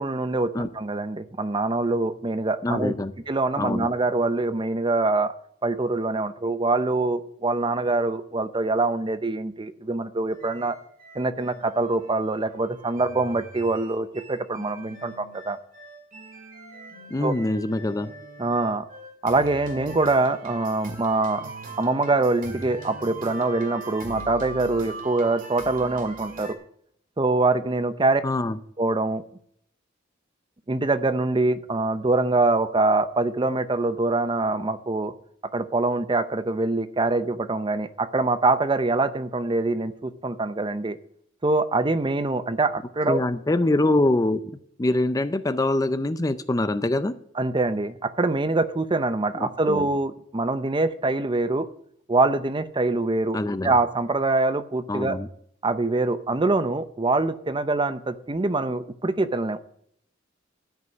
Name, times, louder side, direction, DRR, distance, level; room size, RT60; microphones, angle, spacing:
voice 1, 0.0-2.9 3.3-5.3 5.6-10.8 11.1-15.6 17.2-17.3 18.4-18.9 19.2-26.6 27.2-28.2 28.8-29.2 30.7-35.1 35.5-41.0 41.4-43.2 47.4-51.7 52.1-53.4 53.6-55.2 55.6-59.6, right 2 dB, 25° right, 12 dB, 0.6 m, -24 dB
voice 2, 2.6-3.1 3.6-3.9 17.1-18.1 28.2-28.6 43.1-44.4 44.8-47.1 49.3-49.9 53.3-53.7 54.9-55.3, left 2 dB, 20° left, 12 dB, 0.5 m, -24 dB
sound 1, 10.3-26.5, right 3 dB, 45° right, 2.3 m, -41 dB
12.5 x 5.4 x 8.1 m, 0.67 s
head